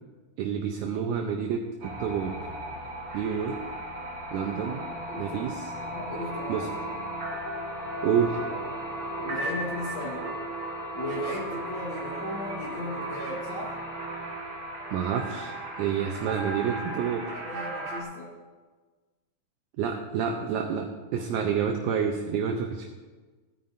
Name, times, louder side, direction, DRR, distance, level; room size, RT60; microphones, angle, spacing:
voice 1, 0.4-2.5 3.1-3.6 4.3-4.8 5.2-5.7 6.5-6.7 8.0-8.4 14.9-17.3 19.8-22.9, right 7 dB, 75° right, 3 dB, 1.9 m, -29 dB
sound 1, 1.8-18.0, right 1 dB, 45° right, 3.0 m, -35 dB
voice 2, 5.7-6.7 9.2-10.3 10.9-13.8 16.2-16.3 17.3-18.3, left 1 dB, 50° left, -4 dB, 1.5 m, -36 dB
16.5 x 9.4 x 2.6 m, 1.3 s
omnidirectional pair, 4.1 m